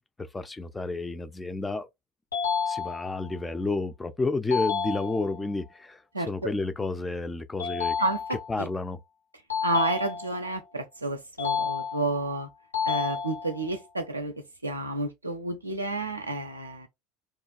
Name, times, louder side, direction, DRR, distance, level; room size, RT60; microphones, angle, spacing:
voice 1, 0.2-1.9 2.7-8.0 8.5-9.0, left 3 dB, 15° left, 0.3 m, -31 dB
sound 1, 2.3-3.3 4.5-5.5 7.6-8.6 9.5-10.6 11.4-12.3 12.7-13.7, left 6 dB, 85° left, 1.4 m, -31 dB
voice 2, 8.0-8.7 9.6-12.5 12.9-14.3 14.6-16.9, right 2 dB, 85° right, 0.4 m, -30 dB
2.9 x 2.2 x 2.3 m
figure-of-eight pair, 70°, 0 cm